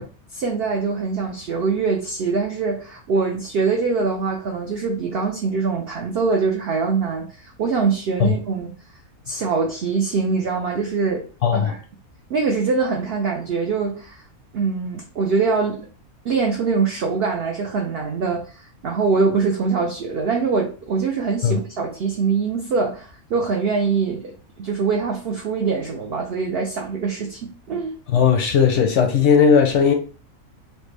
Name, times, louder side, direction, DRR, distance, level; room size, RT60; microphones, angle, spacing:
voice 1, 0.0-8.7 9.3-11.3 11.5-11.8 12.3-14.2 14.5-15.9 16.2-28.0, right 4 dB, 80° right, 0.5 m, -23 dB
voice 2, 11.4-11.8 21.4-21.6 28.1-29.9, left 6 dB, 65° left, 0.7 m, -17 dB
3.2 x 2.1 x 3.2 m
omnidirectional pair, 1.6 m